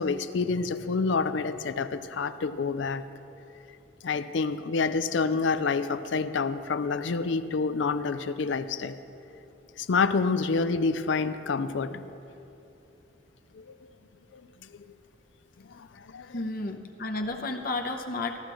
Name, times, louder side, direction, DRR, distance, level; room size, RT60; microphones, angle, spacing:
voice 1, 0.0-3.0 4.0-9.0 9.8-12.1 13.5-13.8 14.3-14.4 15.7-16.3, left 4 dB, 65° left, 12 dB, 0.5 m, -28 dB
voice 2, 16.3-18.4, left 2 dB, 50° left, 3 dB, 0.8 m, -32 dB
14.5 x 14.0 x 3.1 m, 3.0 s
head